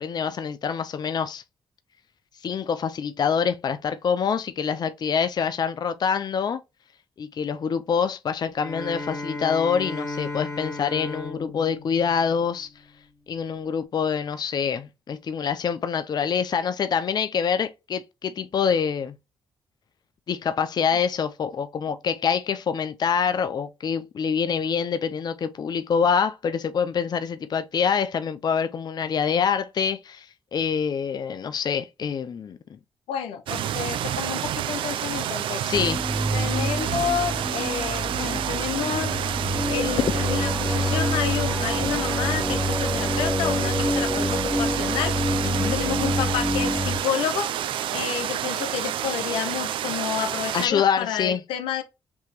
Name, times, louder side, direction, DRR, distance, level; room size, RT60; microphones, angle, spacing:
voice 1, 0.0-1.4 2.4-6.6 7.2-12.7 13.3-19.1 20.3-32.8 35.6-36.0 40.0-40.1 45.4-45.8 50.5-51.4, left 7 dB, 50° left, 0.5 m, -25 dB
Bowed string instrument, 8.5-13.0, left 2 dB, 35° left, 2.3 m, -35 dB
voice 2, 33.1-35.6 36.3-39.2 39.7-45.1 45.7-47.5 47.9-51.8, left 9 dB, 90° left, 0.7 m, -30 dB
sound 1, 33.5-50.7, right 11 dB, 75° right, 0.4 m, -29 dB
sound 2, 35.7-47.0, left 1 dB, 5° left, 0.8 m, -27 dB
5.4 x 2.9 x 2.9 m
supercardioid pair, 55°, 9 cm